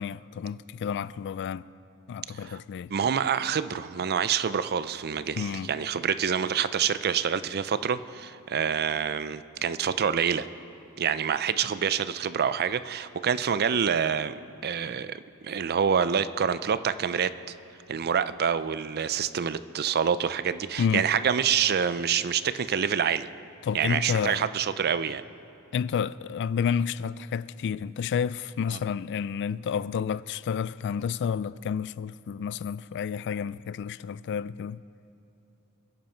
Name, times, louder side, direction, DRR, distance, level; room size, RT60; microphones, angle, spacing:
voice 1, 0.0-1.7 2.1-2.9 5.4-5.7 20.8-21.1 23.6-24.5 25.7-34.8, left 7 dB, 55° left, 0.3 m, -30 dB
voice 2, 2.3-2.6 2.9-10.5 11.0-14.3 14.6-17.3 17.9-23.3 23.7-25.2 28.7-28.8, right 7 dB, 45° right, 0.5 m, -27 dB
27.5 x 10.5 x 4.5 m
head